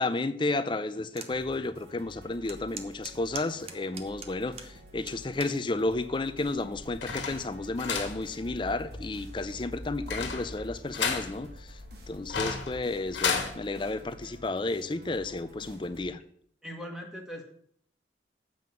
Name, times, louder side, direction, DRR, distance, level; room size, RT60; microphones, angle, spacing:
voice 1, 0.0-11.8 12.1-16.2, left 2 dB, 25° left, 13 dB, 0.5 m, -32 dB
sound 1, 1.2-1.3 1.8-1.9 2.5-4.7 5.1-5.6 6.3-6.6, right 6 dB, 35° right, 0.8 m, -41 dB
sound 2, 1.3-16.1, equal, 60° right, 1.9 m, -51 dB
sound 3, 6.5-13.5, left 5 dB, 90° left, 1.5 m, -34 dB
voice 2, 16.6-17.4, equal, 5° right, 1 dB, 1.4 m, -40 dB
7.7 x 5.5 x 7.5 m, 0.64 s
head